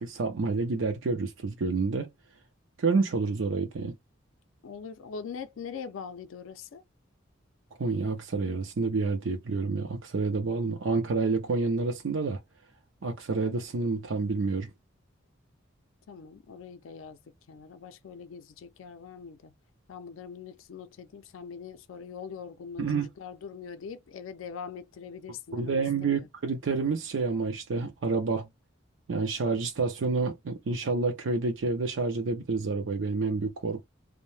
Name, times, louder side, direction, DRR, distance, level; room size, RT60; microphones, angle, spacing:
voice 1, 0.0-2.1 2.8-3.9 7.8-12.4 13.0-14.7 22.8-23.1 25.5-28.5 29.1-33.8, right 4 dB, 75° right, 0.5 m, -28 dB
voice 2, 4.6-6.8 16.1-17.2 17.5-19.5 19.9-26.3, left 6 dB, 85° left, 0.4 m, -42 dB
2.7 x 2.1 x 3.1 m
head